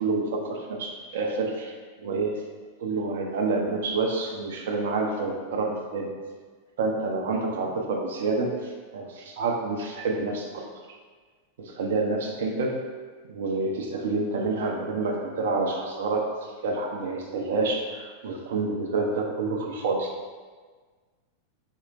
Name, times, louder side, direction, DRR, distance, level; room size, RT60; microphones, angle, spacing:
voice 1, 0.0-1.7 2.0-2.4 2.8-6.1 6.8-10.7 11.6-12.8 13.3-20.1, right 3 dB, 60° right, 1 dB, 0.5 m, -28 dB
4.4 x 2.8 x 2.5 m, 1.5 s
figure-of-eight pair, 90°, 0 cm